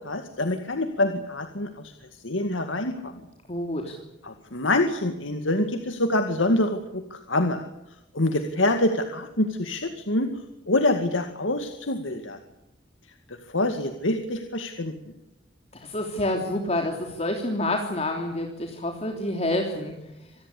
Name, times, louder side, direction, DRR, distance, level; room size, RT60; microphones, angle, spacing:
voice 1, 0.0-1.7 2.2-3.2 4.2-7.7 8.1-10.3 10.7-12.4 13.3-14.9, left 1 dB, 80° left, 6 dB, 2.1 m, -26 dB
voice 2, 3.5-4.0 15.7-20.3, left 1 dB, 35° left, 2 dB, 3.3 m, -28 dB
26.5 x 19.5 x 8.5 m, 0.93 s
head